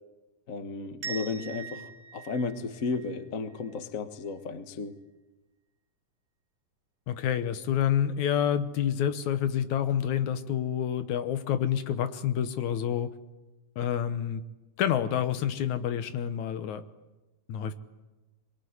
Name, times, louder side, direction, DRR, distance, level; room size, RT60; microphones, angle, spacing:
voice 1, 0.5-5.0, left 4 dB, 50° left, 9 dB, 0.9 m, -34 dB
sound 1, 1.0-3.8, right 6 dB, 85° right, 4.3 m, -42 dB
voice 2, 7.1-13.1 13.8-14.4 14.8-16.8 17.5-17.7, left 9 dB, 70° left, 11 dB, 2.3 m, -28 dB
23.0 x 22.5 x 9.6 m, 1.1 s
omnidirectional pair, 3.8 m